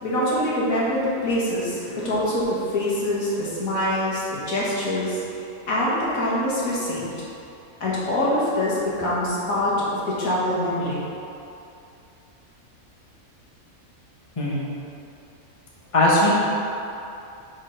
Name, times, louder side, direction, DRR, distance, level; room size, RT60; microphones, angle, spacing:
voice 1, 0.0-5.2 5.7-7.1 7.8-11.0, left 1 dB, 85° left, -7 dB, 1.9 m, -24 dB
voice 2, 15.9-16.3, left 1 dB, 25° left, -6 dB, 1.2 m, -20 dB
6.4 x 4.5 x 5.1 m, 2.7 s
omnidirectional pair, 1.4 m